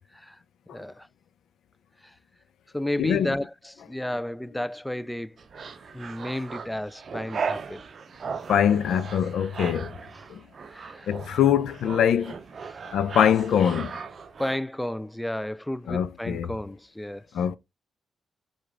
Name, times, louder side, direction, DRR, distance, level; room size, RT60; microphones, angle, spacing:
voice 1, 0.7-1.1 2.0-2.1 2.7-5.4 5.9-7.8 10.7-11.1 14.4-17.3, left 1 dB, 5° left, 0.3 m, -32 dB
voice 2, 3.0-3.4 8.5-10.0 10.3-10.4 11.1-12.3 12.9-14.0 15.9-16.5 17.3-17.6, left 9 dB, 75° left, 0.4 m, -23 dB
sound 1, 5.4-14.6, right 5 dB, 55° right, 0.5 m, -37 dB
4.9 x 2.3 x 3.6 m
supercardioid pair, 60°, 0 cm